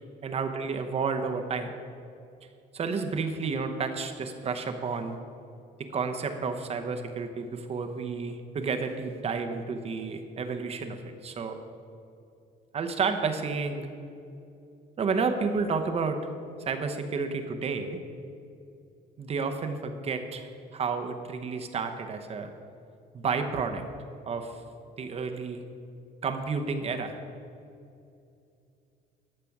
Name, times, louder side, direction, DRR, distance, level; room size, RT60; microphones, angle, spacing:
voice 1, 0.2-1.7 2.7-5.2 5.8-11.0 11.2-11.6 12.7-13.9 15.0-16.2 16.6-18.0 19.2-22.5 23.1-23.8 24.3-24.6 25.0-25.6 26.2-27.2, right 5 dB, 35° right, 6 dB, 0.8 m, -31 dB
12.0 x 6.7 x 5.9 m, 2.6 s
cardioid pair, 135°, 17 cm